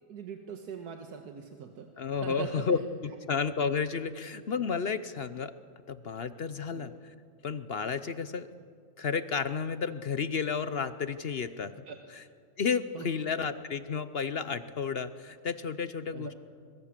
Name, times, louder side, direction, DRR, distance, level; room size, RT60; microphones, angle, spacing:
voice 1, 0.1-1.9 2.2-2.7 3.0-3.2 4.0-4.1 6.7-6.9 11.9-12.0 12.9-13.1 16.1-16.3, right 6 dB, 85° right, 4 dB, 1.8 m, -41 dB
voice 2, 2.0-2.8 3.3-5.5 5.9-7.1 7.4-8.5 9.0-11.7 12.2-12.3 12.6-16.3, left 6 dB, 50° left, 12 dB, 0.8 m, -32 dB
25.0 x 22.0 x 7.4 m, 2.1 s
omnidirectional pair, 1.6 m